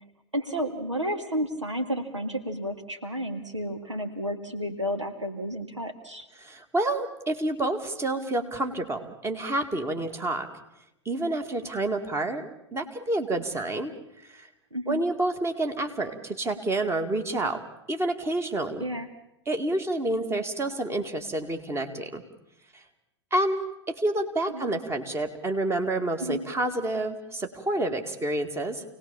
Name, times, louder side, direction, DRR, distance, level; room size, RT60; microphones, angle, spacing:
voice 1, 0.3-6.3 14.7-15.0 18.8-19.1 24.5-24.7 26.2-26.4, equal, 90° right, 6 dB, 2.3 m, -31 dB
voice 2, 6.4-10.5 11.1-13.9 14.3-14.5 14.9-17.6 17.9-18.8 19.5-22.2 22.7-22.8 23.3-28.8, right 2 dB, 15° right, 6 dB, 2.5 m, -29 dB
28.5 x 19.0 x 7.3 m, 0.82 s
figure-of-eight pair, 95°, 15 cm